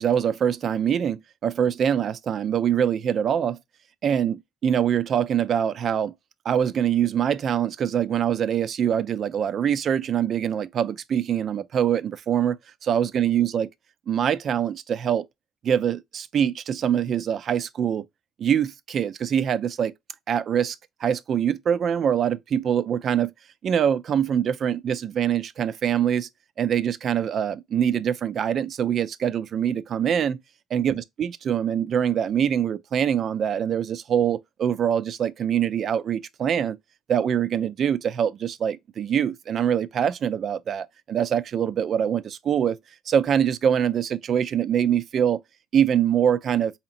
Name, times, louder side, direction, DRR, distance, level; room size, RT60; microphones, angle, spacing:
voice 1, 0.0-3.6 4.0-6.1 6.5-12.6 12.9-13.7 14.1-15.2 15.6-18.0 18.4-19.9 20.3-20.8 21.0-23.3 23.6-26.3 26.6-30.4 30.7-36.8 37.1-42.8 43.1-45.4 45.7-46.7, right 9 dB, 50° right, 0.3 m, -24 dB
4.8 x 2.8 x 2.5 m
cardioid pair, 105°, 0 cm